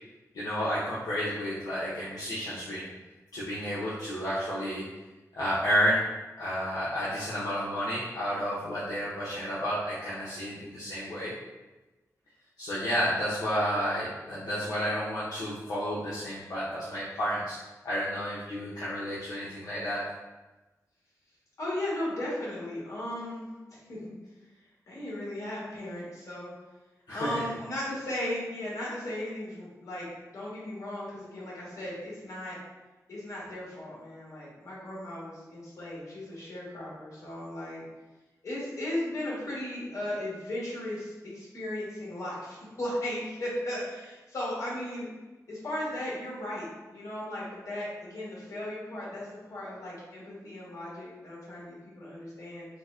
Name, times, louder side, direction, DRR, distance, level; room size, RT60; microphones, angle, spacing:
voice 1, 0.3-2.8 3.3-4.8 5.4-6.0 6.4-11.3 12.6-17.6 17.8-20.1 27.1-27.4, equal, 80° left, -8 dB, 0.7 m, -31 dB
voice 2, 21.6-24.1 24.9-26.5 27.1-32.6 33.1-37.8 38.4-45.1 45.5-52.7, left 1 dB, 60° left, -6 dB, 1.4 m, -36 dB
4.4 x 2.1 x 2.5 m, 1.1 s
wide cardioid pair, 90°, 6 cm